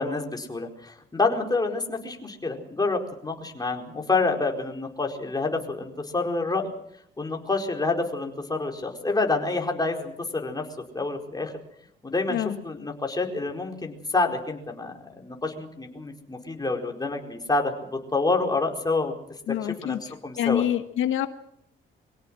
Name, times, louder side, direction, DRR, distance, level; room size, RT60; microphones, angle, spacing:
voice 1, 0.0-6.7 7.2-10.7 10.9-11.5 12.0-19.1 19.6-20.0 20.2-20.6, left 3 dB, 20° left, 3 dB, 4.7 m, -28 dB
voice 2, 12.3-12.6 19.5-20.0 20.4-21.3, left 11 dB, 80° left, 9 dB, 1.4 m, -26 dB
24.5 x 17.0 x 7.7 m, 0.73 s
cardioid pair, 90°, 20 cm